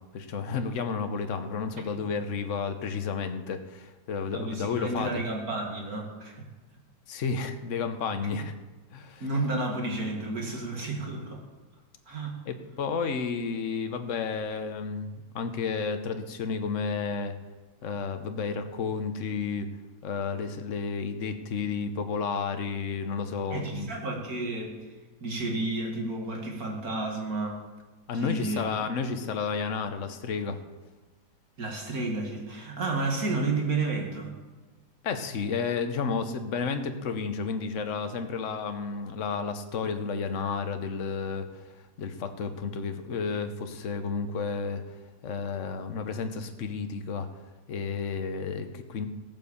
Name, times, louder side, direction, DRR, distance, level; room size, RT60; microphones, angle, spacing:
voice 1, 0.1-5.1 7.1-8.5 8.9-9.2 12.5-17.3 17.8-19.7 20.0-23.9 28.1-30.6 35.0-41.6 42.0-44.8 45.2-47.3 47.7-49.1, left 5 dB, 50° left, 7 dB, 1.2 m, -31 dB
voice 2, 4.3-6.5 9.2-11.4 12.1-12.3 23.5-24.8 25.2-27.6 28.1-28.7 31.6-34.4 45.6-45.8, right 2 dB, 60° right, 1 dB, 2.5 m, -31 dB
15.5 x 9.0 x 7.1 m, 1.2 s
omnidirectional pair, 1.8 m